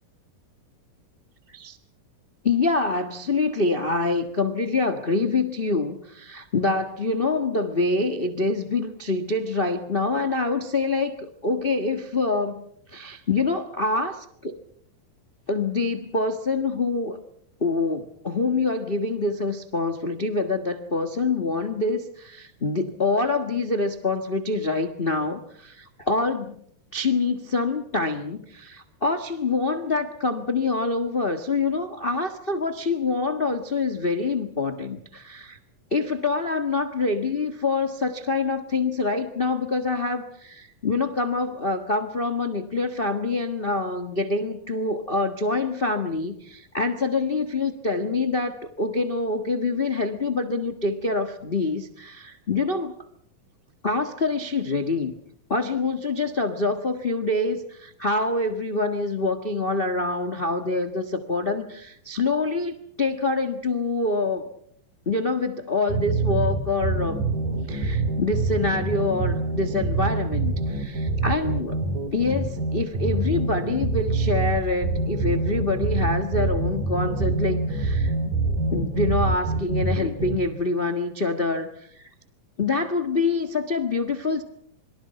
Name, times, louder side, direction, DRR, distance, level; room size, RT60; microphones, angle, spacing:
voice 1, 2.4-14.6 15.5-17.2 17.6-26.5 26.9-35.6 35.9-53.0 53.8-55.1 55.5-64.4 65.0-67.2 67.7-71.8 72.1-78.1 78.7-82.1 82.6-84.4, left 3 dB, 80° left, 9 dB, 0.5 m, -26 dB
sound 1, 65.9-80.4, right 3 dB, 80° right, 4.8 m, -25 dB
27.5 x 23.0 x 5.8 m, 0.66 s
omnidirectional pair, 3.9 m